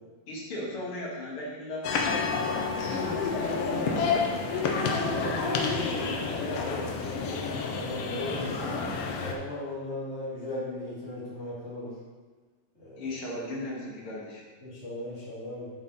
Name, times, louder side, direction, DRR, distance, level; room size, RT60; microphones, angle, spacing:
voice 1, 0.3-1.8 2.8-4.5 5.1-7.4 13.0-14.5, left 1 dB, 50° left, -4 dB, 2.2 m, -37 dB
sound 1, 1.8-9.3, left 4 dB, 90° left, 1.3 m, -29 dB
voice 2, 7.7-8.9 9.2-12.0 12.7-13.1 14.6-15.7, left 1 dB, 20° left, -8 dB, 2.5 m, -37 dB
7.1 x 6.9 x 4.0 m, 1.4 s
omnidirectional pair, 3.7 m